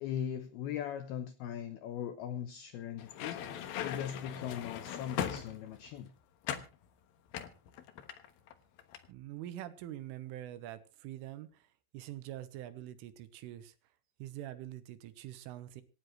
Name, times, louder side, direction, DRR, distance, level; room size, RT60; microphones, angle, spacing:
voice 1, 0.0-3.4 3.8-6.1, left 9 dB, 85° left, 2.2 m, -39 dB
sound 1, 3.0-5.9 6.4-6.7 7.3-8.5 8.8-9.1, left 10 dB, 70° left, 2.4 m, -39 dB
voice 2, 9.1-13.8 14.2-15.8, right 13 dB, 80° right, 3.6 m, -45 dB
26.5 x 10.5 x 3.2 m
omnidirectional pair, 5.8 m